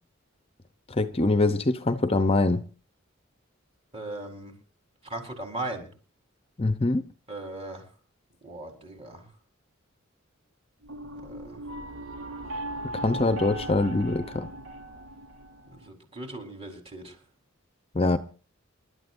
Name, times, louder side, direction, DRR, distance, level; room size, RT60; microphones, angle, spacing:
voice 1, 1.0-2.6 6.6-7.0 12.9-14.5 17.9-18.2, left 2 dB, 30° left, 0.7 m, -24 dB
voice 2, 3.9-4.5 5.0-5.9 7.3-7.8 8.4-9.2 11.2-11.6 15.7-17.2, right 2 dB, 30° right, 4.2 m, -38 dB
sound 1, 10.8-15.9, right 1 dB, 85° right, 3.1 m, -38 dB
28.0 x 12.5 x 2.6 m
head